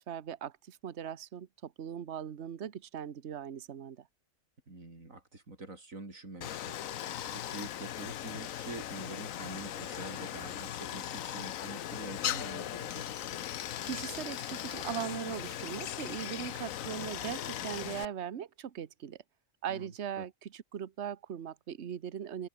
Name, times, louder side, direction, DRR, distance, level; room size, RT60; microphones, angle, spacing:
voice 1, 0.0-4.1 13.8-19.2 19.6-22.5, right 9 dB, 60° right, 1.3 m, -39 dB
voice 2, 4.7-13.1 19.7-19.9 20.2-20.3, right 2 dB, 85° right, 4.9 m, -46 dB
Stream, 6.4-18.1, left 11 dB, 85° left, 1.2 m, -38 dB
open air
omnidirectional pair, 1.4 m